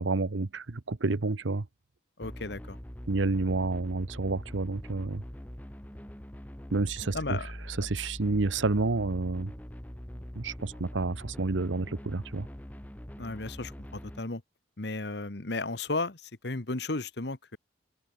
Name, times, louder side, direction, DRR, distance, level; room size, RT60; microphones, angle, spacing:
voice 1, 0.0-1.7 3.1-5.2 6.7-7.4 7.8-9.5 10.3-12.5, right 3 dB, 80° right, 0.9 m, -29 dB
voice 2, 2.2-2.8 7.1-7.5 13.2-14.4 14.8-17.6, left 3 dB, 60° left, 1.4 m, -34 dB
sound 1, 2.2-14.2, equal, 10° left, 1.3 m, -43 dB
open air
head